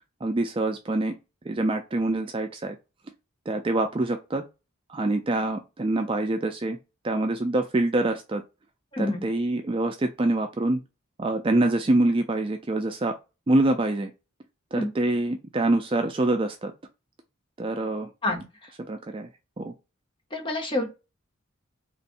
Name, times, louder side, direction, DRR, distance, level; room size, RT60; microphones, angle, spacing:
voice 1, 0.2-1.1 1.5-2.8 3.5-4.4 4.9-6.8 7.0-8.4 9.0-10.8 11.2-13.1 13.5-14.1 14.7-16.7 17.6-18.1 18.9-19.3 19.6-19.7, right 2 dB, 25° right, 5 dB, 0.4 m, -25 dB
voice 2, 8.9-9.2 14.8-14.9 18.2-18.4 20.3-20.9, left 2 dB, 25° left, 2 dB, 1.0 m, -27 dB
4.1 x 3.1 x 2.5 m, 0.27 s
head